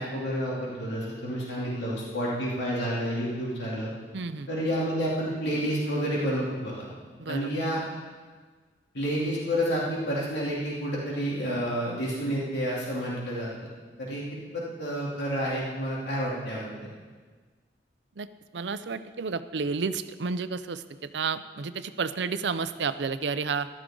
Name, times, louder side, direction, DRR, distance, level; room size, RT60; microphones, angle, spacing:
voice 1, 0.0-3.9 4.5-6.9 7.3-7.8 8.9-13.5 14.0-14.2 14.5-16.7, equal, 80° left, -6 dB, 3.0 m, -29 dB
voice 2, 4.1-4.5 7.2-7.5 18.2-18.3 18.5-23.7, right 5 dB, 85° right, 12 dB, 0.6 m, -31 dB
14.5 x 12.0 x 3.8 m, 1.4 s
head